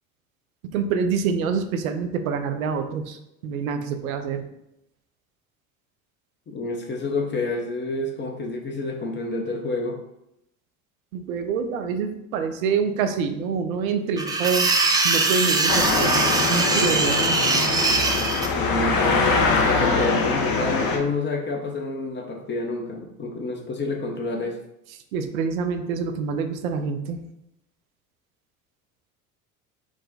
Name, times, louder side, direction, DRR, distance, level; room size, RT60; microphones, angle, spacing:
voice 1, 0.7-4.4 11.1-14.7 15.0-17.4 25.1-27.2, right 6 dB, 80° right, 8 dB, 0.6 m, -26 dB
voice 2, 6.5-10.0 18.5-24.6, left 3 dB, 25° left, 2 dB, 0.7 m, -29 dB
sound 1, 14.2-18.5, right 3 dB, 10° right, 0.3 m, -22 dB
sound 2, 15.7-21.0, left 4 dB, 55° left, 0.9 m, -23 dB
4.7 x 2.2 x 3.9 m, 0.82 s
hypercardioid pair, 65°, 41 cm